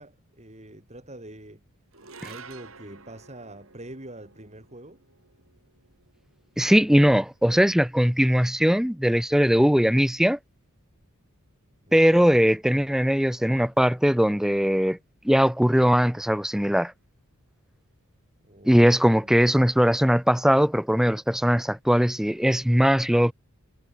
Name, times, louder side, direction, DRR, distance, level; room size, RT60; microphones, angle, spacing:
voice 1, 0.0-1.6 2.2-5.0 11.9-12.2 18.4-19.4, right 1 dB, 30° right, 5.1 m, -45 dB
sound 1, 1.9-8.4, right 5 dB, 65° right, 6.8 m, -51 dB
voice 2, 6.6-10.4 11.9-15.0 15.2-16.9 18.6-23.3, equal, ahead, 0.7 m, -20 dB
head